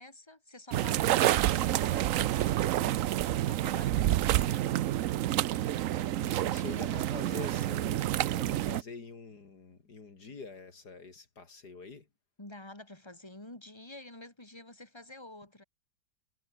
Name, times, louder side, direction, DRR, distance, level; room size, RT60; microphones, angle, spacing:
voice 1, 0.0-4.7 6.6-7.4 12.4-15.6, left 2 dB, 15° left, 4.2 m, -49 dB
sound 1, 0.7-8.8, right 13 dB, 65° right, 0.9 m, -28 dB
voice 2, 5.5-12.1, left 4 dB, 70° left, 3.4 m, -46 dB
omnidirectional pair, 1.8 m